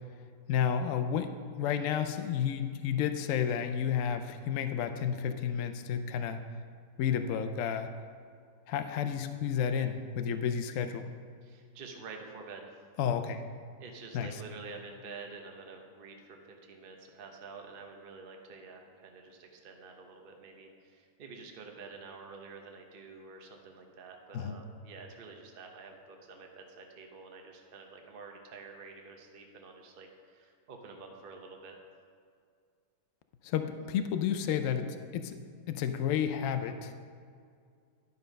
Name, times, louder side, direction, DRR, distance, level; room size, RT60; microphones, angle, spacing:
voice 1, 0.5-1.3 1.6-6.4 7.0-7.9 8.7-11.1 13.0-13.4 14.1-14.3 24.3-24.6 33.4-35.4 35.7-36.9, left 8 dB, 85° left, 8 dB, 0.7 m, -31 dB
voice 2, 11.4-12.6 13.8-31.8, right 4 dB, 40° right, 2 dB, 0.8 m, -48 dB
11.0 x 5.4 x 5.2 m, 2.2 s
omnidirectional pair, 2.0 m